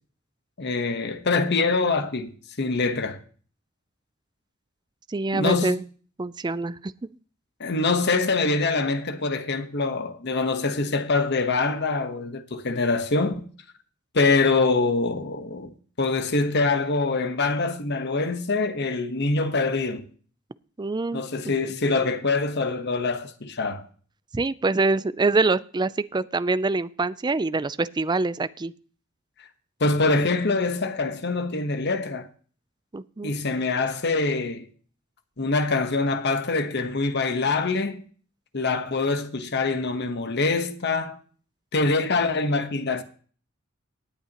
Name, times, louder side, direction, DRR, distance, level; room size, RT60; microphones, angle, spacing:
voice 1, 0.6-3.2 5.3-5.8 7.6-13.4 14.1-20.0 21.1-23.8 29.8-32.3 33.2-34.7 35.4-38.0 38.5-41.2 41.7-43.0, left 3 dB, 55° left, 1.2 m, -24 dB
voice 2, 5.1-5.8 6.2-6.9 20.8-21.2 24.3-28.7 32.9-33.3, right 3 dB, 20° right, 0.4 m, -25 dB
18.5 x 8.3 x 3.0 m
head